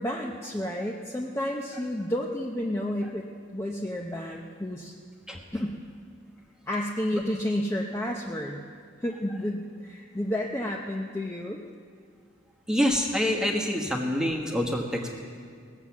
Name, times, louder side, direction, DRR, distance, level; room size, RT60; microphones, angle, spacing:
voice 1, 0.0-3.2 3.5-4.9 5.5-5.8 6.7-8.6 9.0-11.6, left 1 dB, 15° left, -1 dB, 0.6 m, -31 dB
voice 2, 12.7-15.1, equal, 5° right, 0 dB, 1.2 m, -26 dB
18.5 x 7.3 x 7.2 m, 2.1 s
head